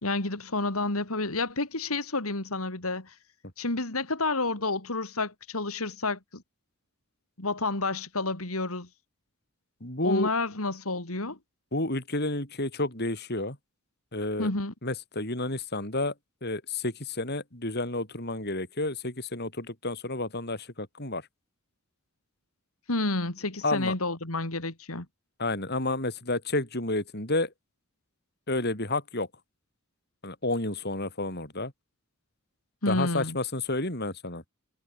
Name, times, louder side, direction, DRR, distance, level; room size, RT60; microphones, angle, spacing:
voice 1, 0.0-3.1 3.6-6.4 7.4-8.9 10.0-11.4 14.4-14.7 22.9-25.0 32.8-33.4, left 2 dB, 85° left, 3.5 m, -30 dB
voice 2, 9.8-10.3 11.7-13.6 14.1-14.5 14.8-16.1 16.4-21.2 23.6-23.9 25.4-27.5 28.5-29.3 30.2-31.7 32.9-34.4, left 2 dB, 50° left, 6.3 m, -30 dB
head